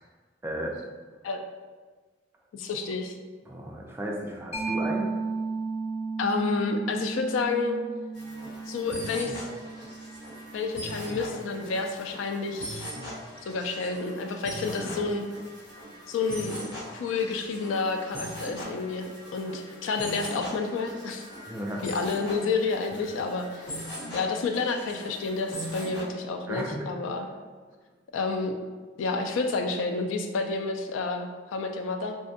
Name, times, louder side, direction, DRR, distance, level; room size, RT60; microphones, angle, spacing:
voice 1, 0.4-0.8 3.5-5.1 14.7-15.0 21.5-21.8 26.5-26.9, right 1 dB, 10° right, -2 dB, 0.3 m, -34 dB
voice 2, 2.5-3.2 6.2-7.8 8.7-9.4 10.5-12.9 13.4-15.3 16.1-16.6 16.9-21.3 21.8-23.8 24.1-27.3 28.1-28.6 29.0-32.2, left 4 dB, 85° left, 5 dB, 0.3 m, -30 dB
Mallet percussion, 4.5-11.8, right 4 dB, 35° left, 0.6 m, -35 dB
sound 1, 8.1-26.0, equal, 60° left, 1.3 m, -40 dB
3.4 x 2.1 x 2.6 m, 1.4 s
head